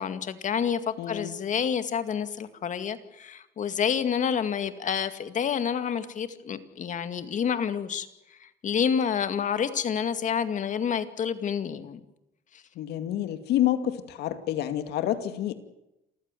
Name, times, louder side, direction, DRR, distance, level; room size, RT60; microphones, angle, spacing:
voice 1, 0.0-8.1 8.4-12.0 12.5-12.6, left 7 dB, 45° left, 10 dB, 2.1 m, -28 dB
voice 2, 1.0-1.3 12.8-15.5, left 12 dB, 80° left, 9 dB, 2.4 m, -28 dB
28.0 x 15.0 x 9.2 m, 0.88 s
cardioid pair, 110°, 17 cm